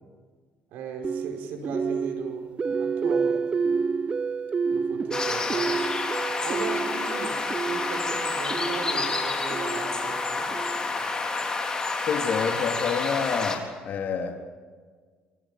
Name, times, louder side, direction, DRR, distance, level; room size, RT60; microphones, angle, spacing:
voice 1, 0.7-2.5 2.8-3.7 4.7-5.8 6.4-10.5, right 4 dB, 80° right, 4 dB, 4.9 m, -38 dB
sound 1, 1.0-11.1, right 5 dB, 30° right, 0.6 m, -30 dB
sound 2, 5.1-13.6, left 3 dB, 20° left, 4.2 m, -29 dB
voice 2, 12.1-14.4, left 6 dB, 60° left, 3 dB, 3.3 m, -28 dB
28.5 x 24.0 x 5.1 m, 1.5 s
cardioid pair, 90°, 3 cm